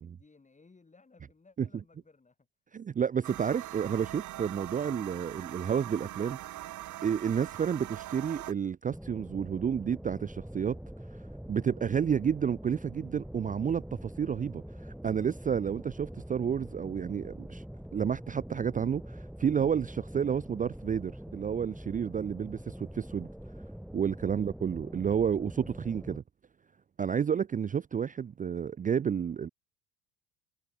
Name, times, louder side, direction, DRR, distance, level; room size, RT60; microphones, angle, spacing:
voice 1, 0.0-2.5 24.1-24.4, left 4 dB, 20° left, 5.3 m, -60 dB
voice 2, 2.7-6.7 7.0-10.8 11.5-17.6 17.9-23.3 23.9-26.2 27.0-29.5, right 7 dB, 20° right, 0.6 m, -30 dB
sound 1, 3.2-8.5, right 15 dB, 55° right, 1.7 m, -42 dB
sound 2, 8.9-26.2, equal, ahead, 1.0 m, -44 dB
hypercardioid pair, 75°, 37 cm